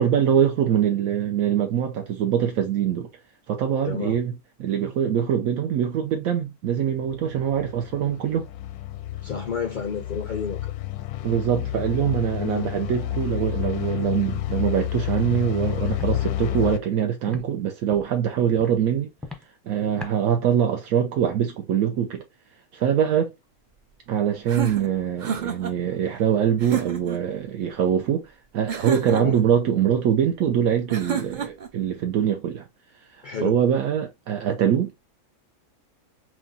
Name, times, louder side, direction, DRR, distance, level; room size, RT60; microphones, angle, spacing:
voice 1, 0.0-3.1 3.5-4.3 4.6-8.5 11.2-19.1 19.7-22.2 22.7-23.3 24.1-32.6 33.1-34.9, right 9 dB, 75° right, 1.0 m, -23 dB
voice 2, 3.8-4.2 9.2-10.7 12.4-12.7 29.1-29.4 33.2-33.6, left 6 dB, 70° left, 0.4 m, -30 dB
sound 1, 7.1-16.8, left 14 dB, 85° left, 1.1 m, -30 dB
Walk footsteps, 15.3-15.4 15.9-16.1 16.6-16.7 17.3-17.4 17.9-18.1 18.6-18.8 19.2-19.4 20.0-20.1, left 3 dB, ahead, 0.6 m, -38 dB
sound 2, 24.5-25.8 26.6-27.2 28.7-29.5 30.9-31.7, right 8 dB, 50° right, 0.6 m, -30 dB
6.1 x 2.3 x 2.7 m
omnidirectional pair, 1.5 m